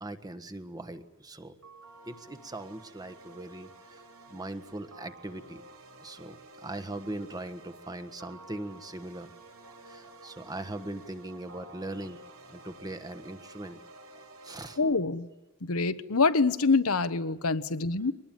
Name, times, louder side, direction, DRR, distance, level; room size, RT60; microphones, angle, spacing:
voice 1, 0.0-1.5 2.1-4.0 4.3-5.6 6.0-9.3 9.6-12.2 12.5-13.8 14.4-14.8, right 1 dB, 20° right, 10 dB, 1.4 m, -40 dB
sound 1, 1.6-14.8, right 2 dB, 80° right, 6.2 m, -51 dB
voice 2, 14.8-15.3 15.6-18.1, left 4 dB, 85° left, 11 dB, 1.2 m, -25 dB
24.0 x 20.0 x 9.1 m, 1.0 s
head